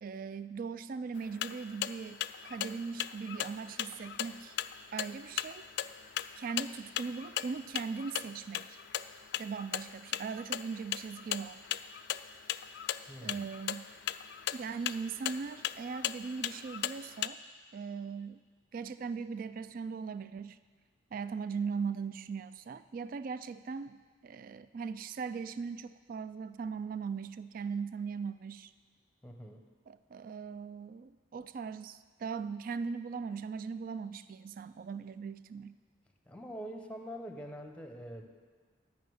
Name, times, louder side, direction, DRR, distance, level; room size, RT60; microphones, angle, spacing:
voice 1, 0.0-4.6 4.9-5.6 6.4-8.8 9.4-11.7 13.2-13.9 14.5-17.4 17.7-18.4 18.7-20.6 21.1-28.7 29.9-35.7, right 5 dB, 50° right, 13 dB, 0.3 m, -39 dB
sound 1, 1.2-17.3, left 11 dB, 65° left, 0.3 m, -38 dB
voice 2, 13.1-13.5 29.2-29.6 36.3-38.3, equal, 5° left, 4 dB, 0.7 m, -44 dB
11.0 x 5.5 x 7.8 m, 1.6 s
head